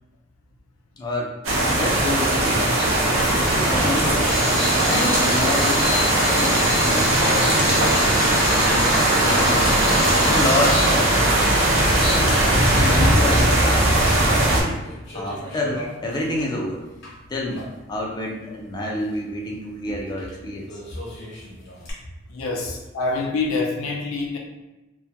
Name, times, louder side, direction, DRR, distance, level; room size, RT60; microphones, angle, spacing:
voice 1, 1.0-1.3 1.6-2.6 3.4-4.4 4.8-6.0 6.3-7.9 8.6-9.8 10.2-11.6 12.8-14.0 14.5-14.8 15.1-16.9 17.3-20.8, left 1 dB, 20° left, -2 dB, 0.4 m, -28 dB
sound 1, 1.4-14.6, right 1 dB, 80° right, 0.6 m, -19 dB
sound 2, 2.8-13.3, right 1 dB, 50° right, 1.0 m, -27 dB
sound 3, 4.3-12.8 13.1-13.2 13.7-14.5 14.7-17.1 17.6-17.7 20.2-20.3 20.7-21.9, left 2 dB, 60° left, 0.8 m, -30 dB
voice 2, 22.3-24.4, left 3 dB, 90° left, 0 dB, 0.4 m, -26 dB
2.2 x 2.1 x 2.7 m, 1.0 s
head